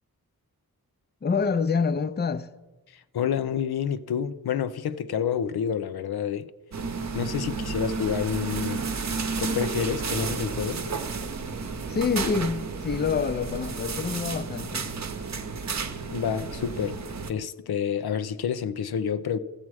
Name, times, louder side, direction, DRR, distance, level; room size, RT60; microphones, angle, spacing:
voice 1, 1.2-2.5 11.9-14.9, left 5 dB, 30° left, 0.5 m, -27 dB
voice 2, 3.1-6.5 7.1-8.8 9.4-10.8 16.1-17.0 17.3-19.4, left 8 dB, 90° left, 0.6 m, -28 dB
sound 1, 6.7-17.3, right 4 dB, 50° right, 0.8 m, -32 dB
14.0 x 7.3 x 4.8 m
wide cardioid pair, 70°, 37 cm